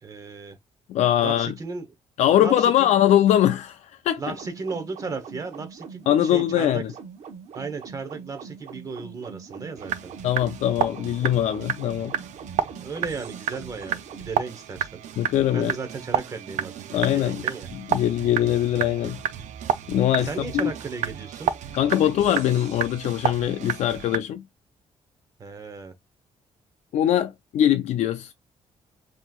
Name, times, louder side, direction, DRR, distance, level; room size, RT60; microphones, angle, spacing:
voice 1, 0.0-0.6 1.2-1.9 2.4-2.9 4.2-6.8 7.5-10.1 12.8-15.0 15.5-16.7 17.1-17.7 20.2-21.5 22.0-22.4 25.4-25.9, right 4 dB, 30° right, 0.9 m, -35 dB
voice 2, 0.9-1.5 2.2-4.3 6.1-6.9 10.2-12.1 15.2-15.8 16.9-17.4 17.7-19.2 19.9-20.7 21.7-24.4 26.9-28.3, left 11 dB, 70° left, 0.4 m, -22 dB
sound 1, 4.3-14.3, right 6 dB, 65° right, 0.9 m, -42 dB
sound 2, 9.8-24.2, right 9 dB, 85° right, 0.5 m, -31 dB
5.4 x 2.9 x 2.3 m
cardioid pair, 180°, 12 cm